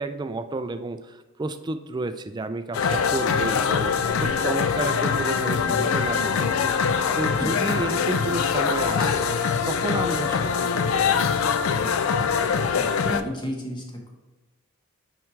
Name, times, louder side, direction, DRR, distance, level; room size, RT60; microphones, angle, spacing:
voice 1, 0.0-6.8 7.1-9.3 9.7-10.7 10.9-11.3, right 3 dB, 20° right, 10 dB, 0.3 m, -31 dB
sound 1, 2.7-13.2, left 6 dB, 70° left, 0.4 m, -23 dB
voice 2, 12.7-14.1, equal, 20° left, 0 dB, 1.1 m, -33 dB
9.1 x 4.7 x 3.2 m, 1.1 s
head